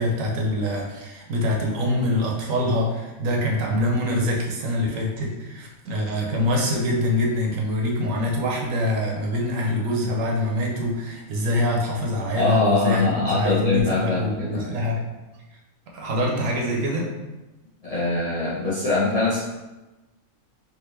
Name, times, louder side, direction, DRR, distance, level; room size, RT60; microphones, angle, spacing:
voice 1, 0.0-15.0 15.9-17.1, left 1 dB, 75° right, -1 dB, 1.1 m, -24 dB
voice 2, 12.3-14.9 17.8-19.4, left 3 dB, 35° left, -9 dB, 0.6 m, -23 dB
3.6 x 2.5 x 3.1 m, 1.1 s
omnidirectional pair, 1.4 m